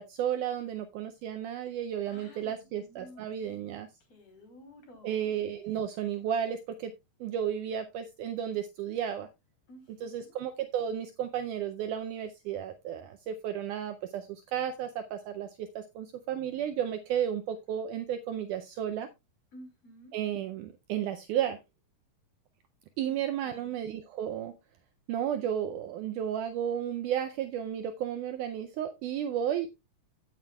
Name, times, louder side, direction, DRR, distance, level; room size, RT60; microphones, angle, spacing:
voice 1, 0.0-3.9 5.0-6.9 7.2-9.3 9.9-19.1 20.1-21.6 23.0-24.5 25.1-29.7, right 9 dB, 80° right, 8 dB, 1.9 m, -33 dB
voice 2, 2.1-3.3 4.1-5.3 9.7-10.3 19.5-20.2 23.1-23.7, equal, 45° left, 3 dB, 3.9 m, -53 dB
16.0 x 7.4 x 2.3 m, 0.23 s
omnidirectional pair, 4.1 m